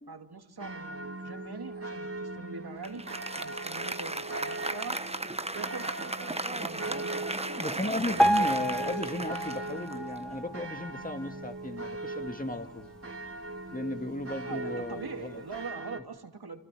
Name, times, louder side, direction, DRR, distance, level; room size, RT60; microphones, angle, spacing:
voice 1, 0.1-3.0 3.4-5.0 5.5-7.1 7.6-8.9 14.4-16.6, right 4 dB, 70° right, 5 dB, 2.8 m, -43 dB
sound 1, 0.6-16.0, right 2 dB, 35° right, 2.7 m, -40 dB
Applause, 2.8-10.4, right 2 dB, 15° right, 1.0 m, -36 dB
voice 2, 7.6-12.9 13.7-15.4, left 1 dB, 20° left, 6 dB, 2.2 m, -35 dB
Piano, 8.2-11.3 11.8-12.0 12.3-12.4 13.1-13.2 13.7-13.8, right 1 dB, ahead, 1.3 m, -29 dB
29.0 x 25.5 x 7.8 m, 0.93 s
wide cardioid pair, 55°, 40 cm